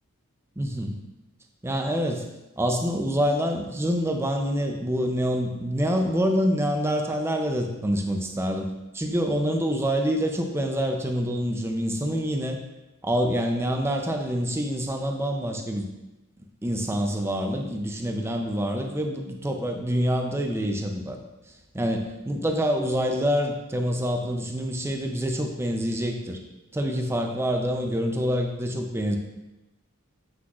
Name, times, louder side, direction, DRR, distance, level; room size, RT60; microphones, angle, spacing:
voice 1, 0.6-0.9 1.6-2.2 2.6-12.6 13.0-15.9 16.6-21.2 21.7-26.4 26.7-29.2, equal, 10° right, 3 dB, 0.5 m, -26 dB
7.7 x 6.0 x 2.4 m, 1.0 s
head